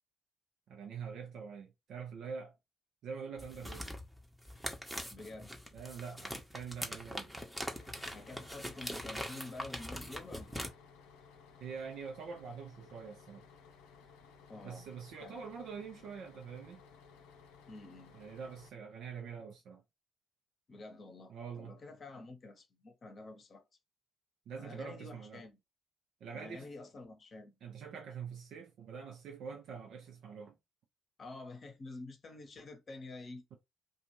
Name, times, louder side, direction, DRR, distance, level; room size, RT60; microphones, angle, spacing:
voice 1, 0.7-2.5 3.0-3.9 5.7-7.3 11.6-13.4 14.6-16.8 18.1-19.8 21.3-21.8 24.5-25.4 26.2-26.7 27.6-30.6, right 6 dB, 65° right, 0.6 m, -45 dB
sound 1, 3.4-10.7, equal, 5° right, 0.9 m, -42 dB
voice 2, 5.1-5.5 8.1-10.6 14.5-14.9 15.2-15.4 17.7-18.1 20.7-23.6 24.6-25.5 26.3-27.6 31.2-33.6, left 2 dB, 45° left, 0.9 m, -49 dB
Bus, 7.7-18.7, left 5 dB, 80° left, 0.6 m, -58 dB
2.5 x 2.4 x 3.0 m
hypercardioid pair, 50°, 0 cm